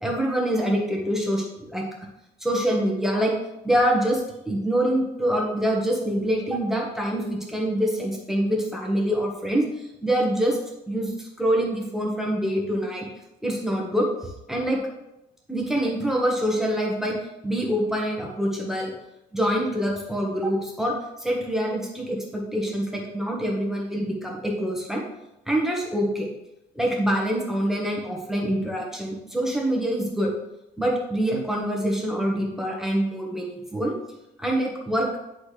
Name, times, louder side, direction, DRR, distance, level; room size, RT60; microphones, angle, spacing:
voice 1, 0.0-1.8 2.4-3.3 3.6-10.6 10.9-13.0 13.4-14.8 15.5-17.2 17.4-18.9 19.3-25.1 25.5-26.3 26.7-30.3 30.8-33.9 34.4-35.1, equal, ahead, -1 dB, 1.4 m, -25 dB
9.5 x 4.2 x 3.3 m, 0.90 s
cardioid pair, 110°, 17 cm